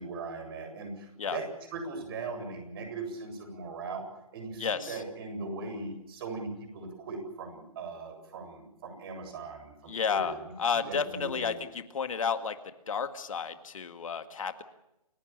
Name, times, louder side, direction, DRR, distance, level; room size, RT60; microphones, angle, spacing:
voice 1, 0.0-1.5 1.7-4.0 4.3-10.4 10.9-11.5, right 3 dB, 40° right, 5 dB, 7.9 m, -39 dB
voice 2, 4.6-5.0 9.9-12.6 12.9-14.6, left 6 dB, 60° left, 9 dB, 1.9 m, -32 dB
29.0 x 16.0 x 7.4 m, 0.86 s
figure-of-eight pair, 145°, 19 cm